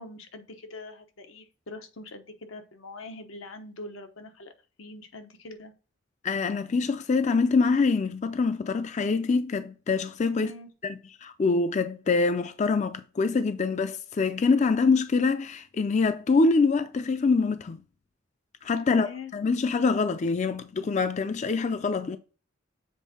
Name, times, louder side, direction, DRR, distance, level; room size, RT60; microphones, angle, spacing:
voice 1, 0.0-4.5 4.8-5.7 10.3-10.7 18.9-19.3, left 2 dB, 90° left, 1.0 m, -43 dB
voice 2, 6.2-10.5 10.8-17.8 18.6-19.1 19.3-22.2, left 4 dB, 35° left, 0.4 m, -25 dB
7.3 x 3.7 x 4.2 m
head